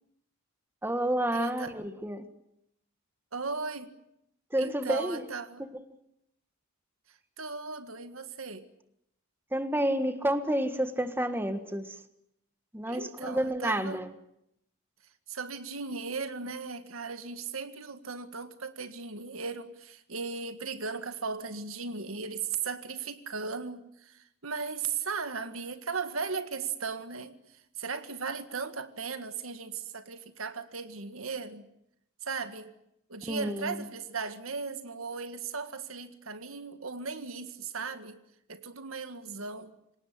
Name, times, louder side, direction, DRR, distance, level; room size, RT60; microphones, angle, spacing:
voice 1, 0.8-2.3 4.5-5.2 5.6-5.8 9.5-12.0 12.7-14.1 33.3-33.9, right 1 dB, 10° right, 1.6 m, -30 dB
voice 2, 1.3-1.7 3.3-3.9 4.6-5.6 7.1-8.7 12.9-14.0 15.3-27.4 27.8-31.6 32.2-32.7 33.1-38.2 38.5-39.7, right 5 dB, 80° right, 1.8 m, -37 dB
26.5 x 18.0 x 9.6 m
head